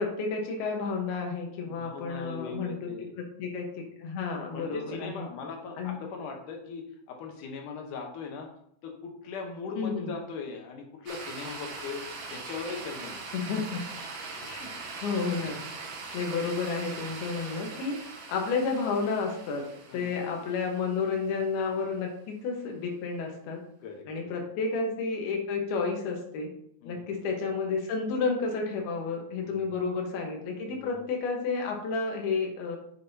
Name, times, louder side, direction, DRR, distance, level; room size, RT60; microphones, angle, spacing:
voice 1, 0.0-2.9 3.2-5.3 5.8-6.0 9.8-10.1 13.3-13.8 14.5-14.7 15.0-15.6 16.1-18.0 18.3-19.6 19.9-23.6 24.1-26.5 26.8-32.8, left 4 dB, 90° left, 1 dB, 3.2 m, -31 dB
voice 2, 1.6-3.1 4.5-8.5 8.8-13.2 14.4-14.6 19.9-20.1 23.8-24.4 26.8-27.0 29.4-29.7 30.7-30.9, left 4 dB, 70° left, 2 dB, 2.3 m, -40 dB
sound 1, 11.1-21.3, right 4 dB, 65° right, 3.2 m, -41 dB
8.4 x 7.7 x 2.8 m, 0.68 s
omnidirectional pair, 4.3 m